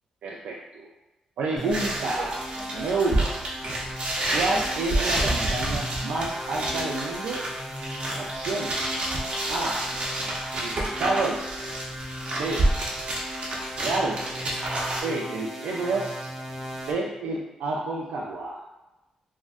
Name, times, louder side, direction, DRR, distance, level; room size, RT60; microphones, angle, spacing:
voice 1, 0.2-0.9 1.4-2.4 2.7-3.3 4.3-7.4 8.2-9.0 9.5-9.8 10.5-11.6 12.4-12.6 13.8-14.2 15.0-16.3 16.9-18.6, right 3 dB, 90° right, -3 dB, 0.3 m, -29 dB
sound 1, 1.6-16.9, equal, 10° right, 0.6 m, -37 dB
sound 2, 1.7-15.0, right 1 dB, 55° right, 0.7 m, -29 dB
3.5 x 2.1 x 2.5 m, 1.0 s
cardioid pair, 85°, 2 cm